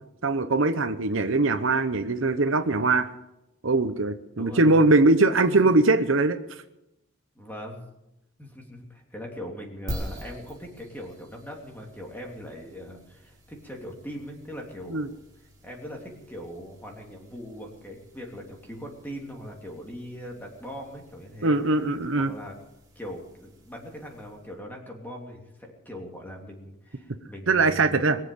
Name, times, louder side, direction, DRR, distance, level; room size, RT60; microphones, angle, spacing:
voice 1, 0.2-3.1 3.6-6.4 14.9-15.1 21.4-22.3 27.5-28.2, right 3 dB, 65° right, 9 dB, 0.9 m, -21 dB
voice 2, 4.3-4.8 5.5-5.6 7.3-7.8 8.4-15.2 15.6-21.6 22.2-22.6 22.9-28.0, equal, 10° left, 0 dB, 3.1 m, -40 dB
sound 1, 9.9-24.6, equal, 15° right, 4.0 m, -45 dB
22.0 x 7.5 x 8.5 m, 0.90 s
head